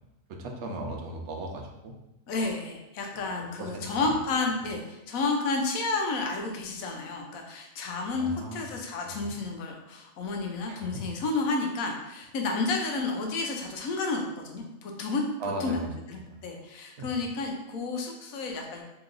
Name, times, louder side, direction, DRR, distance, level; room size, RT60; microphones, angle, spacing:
voice 1, 0.3-1.9 3.1-3.3 3.6-4.2 4.6-4.7 8.1-8.7 9.0-9.3 10.7-11.0 15.4-16.4 17.0-17.1, right 1 dB, 65° right, 2 dB, 0.9 m, -38 dB
voice 2, 2.3-15.2 15.6-15.8 16.1-18.8, left 3 dB, 85° left, 2 dB, 1.1 m, -31 dB
3.0 x 2.9 x 3.8 m, 0.94 s
omnidirectional pair, 1.4 m